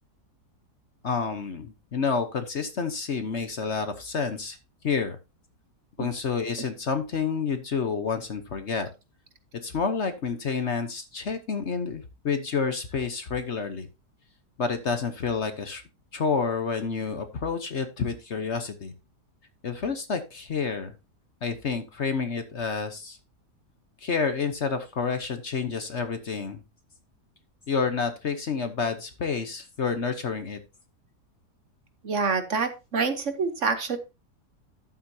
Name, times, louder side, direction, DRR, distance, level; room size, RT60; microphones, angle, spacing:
voice 1, 1.0-4.6 4.8-5.2 6.0-8.9 9.6-13.9 14.6-15.8 16.1-18.9 19.6-20.9 21.4-23.2 24.0-26.6 27.7-30.6, left 5 dB, 45° left, 9 dB, 1.2 m, -29 dB
voice 2, 32.0-34.0, right 5 dB, 50° right, 9 dB, 1.3 m, -26 dB
11.5 x 8.7 x 2.8 m, 0.26 s
omnidirectional pair, 1.8 m